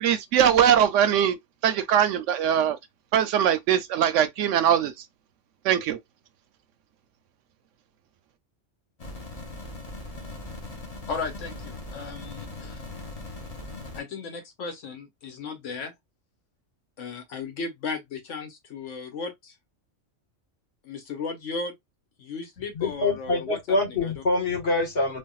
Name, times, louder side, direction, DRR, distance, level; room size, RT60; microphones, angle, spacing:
voice 1, 0.0-1.4 1.6-2.8 3.1-4.9 5.6-6.0, right 9 dB, 80° right, 0.9 m, -21 dB
sound 1, 9.0-14.0, left 2 dB, 35° left, 0.8 m, -39 dB
voice 2, 11.1-12.8 13.9-15.9 17.0-19.5 20.8-21.7 22.2-24.2, left 4 dB, 80° left, 1.3 m, -35 dB
voice 3, 22.7-25.2, left 2 dB, 55° left, 1.6 m, -25 dB
3.4 x 2.3 x 2.3 m
omnidirectional pair, 1.3 m